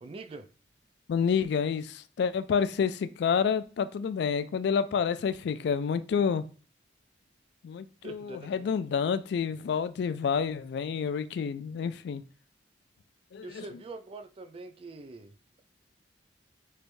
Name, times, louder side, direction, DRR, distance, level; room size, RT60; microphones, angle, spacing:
voice 1, 0.0-0.5 8.0-8.7 13.4-15.6, right 3 dB, 30° right, 0.3 m, -44 dB
voice 2, 1.1-6.4 7.6-12.2 13.3-13.6, left 6 dB, 65° left, 0.3 m, -29 dB
3.2 x 3.2 x 2.5 m
head